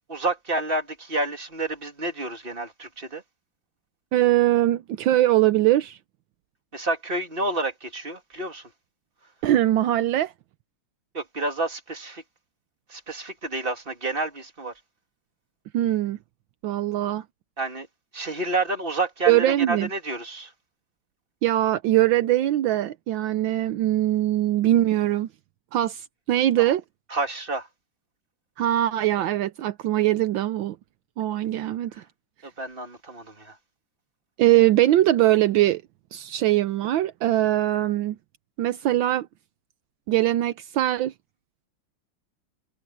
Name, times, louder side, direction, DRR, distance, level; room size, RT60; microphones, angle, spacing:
voice 1, 0.1-3.2 6.7-8.7 11.1-12.2 12.9-14.7 17.6-17.9 18.1-20.5 26.6-26.7 27.1-27.7 32.4-33.5, right 2 dB, 25° right, 2.8 m, -29 dB
voice 2, 4.1-6.0 9.4-10.3 15.7-16.2 16.6-17.2 19.3-19.9 21.4-25.3 25.7-26.8 28.6-30.8 31.2-31.9 34.4-35.8 36.1-38.2 38.6-39.3 40.1-41.1, right 14 dB, 75° right, 1.4 m, -21 dB
omnidirectional pair, 2.1 m